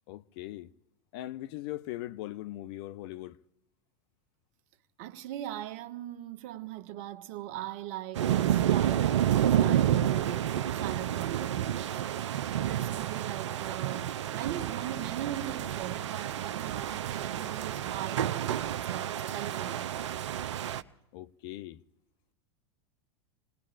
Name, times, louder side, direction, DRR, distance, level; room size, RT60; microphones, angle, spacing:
voice 1, 0.1-0.7 1.1-3.4 21.1-21.8, left 15 dB, 55° left, 0.6 m, -40 dB
voice 2, 5.0-10.2 10.5-12.1 12.6-19.9, right 13 dB, 55° right, 1.1 m, -40 dB
sound 1, 8.1-20.8, right 11 dB, 80° right, 0.6 m, -30 dB
26.5 x 19.5 x 2.5 m
hypercardioid pair, 95°, 15 cm